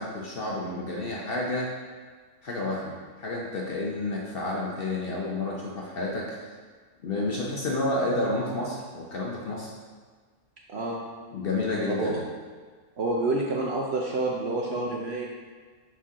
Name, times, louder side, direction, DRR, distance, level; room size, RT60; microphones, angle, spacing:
voice 1, 0.0-1.7 2.4-6.4 7.0-9.7 11.3-12.2, left 2 dB, 50° left, -3 dB, 0.7 m, -30 dB
voice 2, 10.7-11.0 11.9-12.1 13.0-15.3, right 2 dB, 60° right, -1 dB, 0.7 m, -28 dB
5.8 x 4.5 x 3.7 m, 1.5 s
omnidirectional pair, 1.6 m